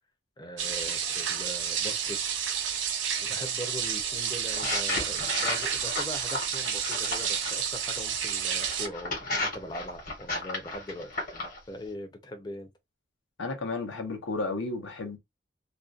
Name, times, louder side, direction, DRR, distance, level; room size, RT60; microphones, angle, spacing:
voice 1, 0.4-2.4 3.2-11.1 11.7-12.7, equal, 20° left, 0.4 m, -41 dB
sound 1, 0.6-8.9, right 7 dB, 80° right, 0.6 m, -30 dB
sound 2, 4.5-7.6 8.3-11.6, left 2 dB, 45° left, 1.0 m, -34 dB
voice 2, 13.4-15.2, left 3 dB, 85° left, 0.8 m, -33 dB
2.5 x 2.1 x 2.4 m
head